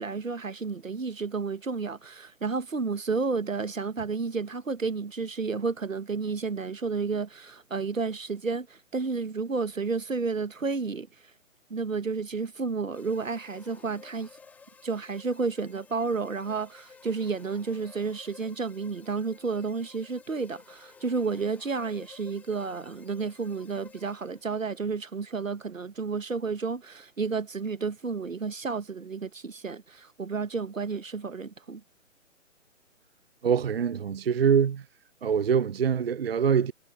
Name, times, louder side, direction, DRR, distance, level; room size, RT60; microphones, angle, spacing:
voice 1, 0.0-11.1 11.7-14.3 14.8-31.8, right 4 dB, 80° right, 1.5 m, -31 dB
sound 1, 12.9-24.7, left 5 dB, 5° left, 1.5 m, -54 dB
voice 2, 33.4-34.9 35.2-36.7, right 7 dB, 50° right, 0.5 m, -24 dB
figure-of-eight pair, 145°, 39 cm